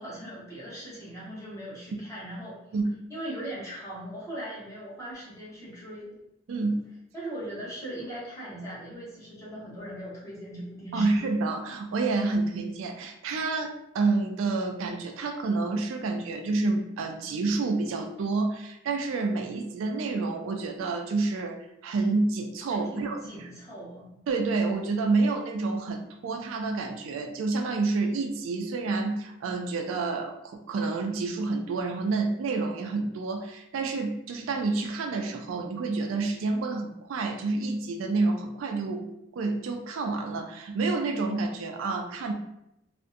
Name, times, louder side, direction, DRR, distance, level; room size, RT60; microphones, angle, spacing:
voice 1, 0.0-2.6 3.1-6.2 7.1-11.3 22.7-24.2, right 1 dB, 15° left, -7 dB, 0.7 m, -39 dB
voice 2, 6.5-6.9 10.9-23.5 24.3-42.3, right 3 dB, 75° right, 4 dB, 0.3 m, -29 dB
2.5 x 2.1 x 2.4 m, 0.83 s
head